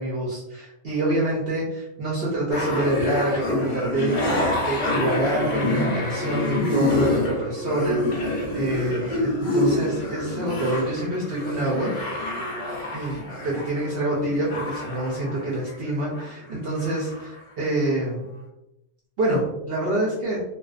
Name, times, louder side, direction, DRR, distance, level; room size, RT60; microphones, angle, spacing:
voice 1, 0.0-11.9 12.9-18.2 19.2-20.4, right 1 dB, 60° right, -5 dB, 0.6 m, -26 dB
sound 1, 2.5-16.3 16.6-17.4 17.9-18.0, left 1 dB, 75° left, 0.4 m, -27 dB
2.5 x 2.1 x 2.4 m, 0.88 s
omnidirectional pair, 1.5 m